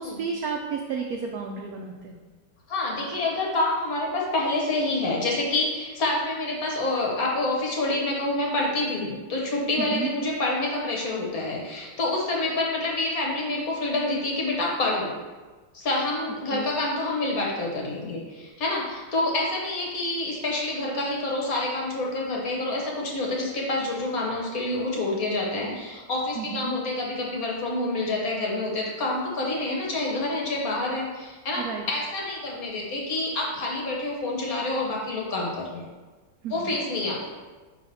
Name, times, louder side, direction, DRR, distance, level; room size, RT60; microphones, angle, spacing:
voice 1, 0.0-2.2 9.8-10.1 16.5-16.7 26.4-26.7 31.6-31.8 36.4-36.8, right 6 dB, 85° right, 1 dB, 0.8 m, -32 dB
voice 2, 2.7-15.2 15.7-35.8 36.5-37.3, left 2 dB, 55° left, -2 dB, 1.2 m, -27 dB
5.6 x 3.3 x 5.3 m, 1.3 s
omnidirectional pair, 2.1 m